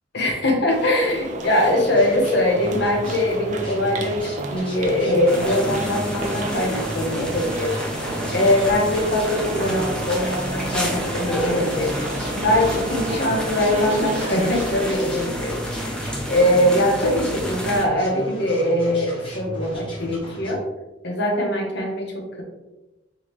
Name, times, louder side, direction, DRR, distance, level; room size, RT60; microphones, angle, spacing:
voice 1, 0.1-7.8 8.3-12.0 12.4-16.0 16.3-20.7 21.0-22.4, left 1 dB, 65° left, 1 dB, 1.0 m, -22 dB
sound 1, 0.7-14.9, right 2 dB, 40° right, 0.5 m, -32 dB
sound 2, 1.9-20.5, equal, 30° left, 1.3 m, -36 dB
sound 3, 5.3-17.8, equal, 5° left, 0.7 m, -30 dB
4.7 x 3.3 x 3.1 m, 1.0 s
head